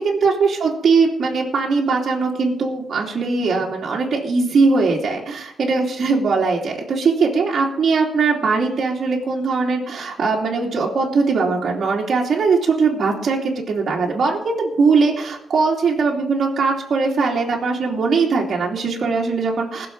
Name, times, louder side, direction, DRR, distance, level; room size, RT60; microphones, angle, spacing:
voice 1, 0.0-19.9, right 4 dB, 55° right, -3 dB, 2.9 m, -20 dB
20.5 x 7.0 x 4.8 m, 0.73 s
cardioid pair, 110°, 0 cm